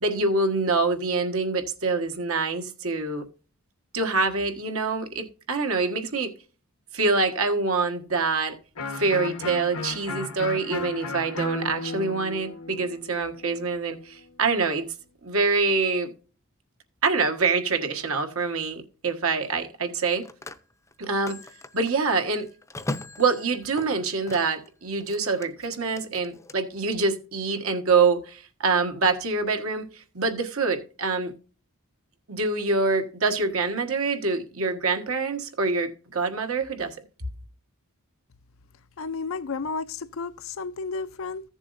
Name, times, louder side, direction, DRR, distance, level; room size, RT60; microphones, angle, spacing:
voice 1, 0.0-3.2 3.9-6.3 6.9-8.6 8.9-14.9 15.2-16.1 17.0-20.3 21.0-21.4 21.7-22.5 23.2-31.3 32.3-37.0, right 4 dB, 70° right, 1.4 m, -25 dB
Electric guitar, 8.8-14.4, left 3 dB, 85° left, 1.3 m, -34 dB
Telephone, 17.7-17.9 19.8-24.7 25.0-26.6, left 2 dB, 15° left, 0.6 m, -40 dB
voice 2, 39.0-41.4, left 4 dB, 65° left, 0.5 m, -32 dB
15.0 x 7.1 x 2.6 m
head